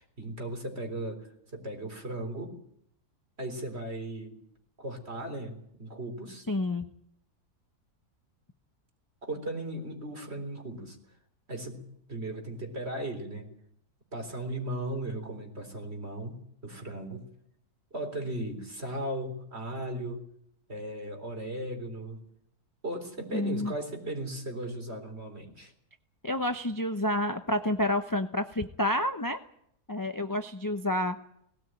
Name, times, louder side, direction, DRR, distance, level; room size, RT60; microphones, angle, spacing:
voice 1, 0.0-2.6 3.4-4.4 4.8-6.5 9.2-11.0 11.5-11.8 12.1-13.5 14.1-17.3 17.9-20.2 20.7-22.2 22.8-25.7, right 1 dB, 40° right, 5 dB, 4.1 m, -37 dB
voice 2, 6.5-6.9 23.3-23.7 26.2-29.4 29.9-31.2, left 1 dB, 20° left, 7 dB, 0.6 m, -29 dB
19.0 x 17.0 x 9.1 m, 0.72 s
omnidirectional pair, 1.6 m